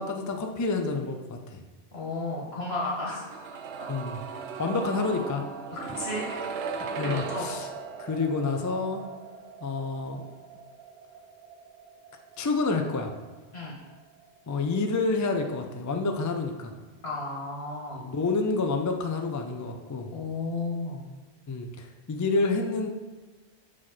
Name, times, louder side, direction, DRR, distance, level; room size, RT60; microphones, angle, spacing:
voice 1, 0.0-1.6 3.9-4.2 4.6-5.5 7.0-7.7 8.0-9.0 9.6-10.2 12.4-13.1 14.5-16.7 17.9-20.1 21.5-22.9, left 3 dB, 30° left, 4 dB, 0.3 m, -28 dB
voice 2, 1.9-3.3 3.8-3.9 5.7-6.4 7.0-7.5 13.5-13.7 17.0-18.0 20.1-21.0, left 2 dB, 75° left, -3 dB, 1.8 m, -33 dB
sound 1, 3.1-14.9 15.2-15.3, right 5 dB, 75° right, 0.8 m, -39 dB
5.8 x 5.0 x 4.1 m, 1.3 s
omnidirectional pair, 1.1 m